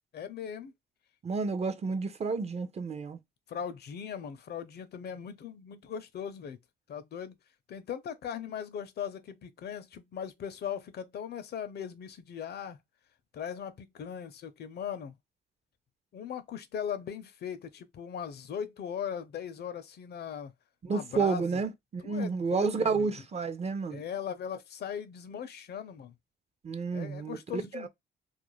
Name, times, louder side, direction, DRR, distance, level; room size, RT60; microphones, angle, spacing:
voice 1, 0.1-0.7 3.5-6.6 6.9-7.4 7.7-12.8 13.3-15.1 16.1-20.5 20.9-21.6 22.0-23.1 23.9-26.1 26.9-27.9, left 8 dB, 55° left, 0.5 m, -39 dB
voice 2, 1.2-3.2 20.8-24.0 26.6-27.9, right 4 dB, 30° right, 0.4 m, -31 dB
2.4 x 2.1 x 3.0 m
cardioid pair, 90°, 20 cm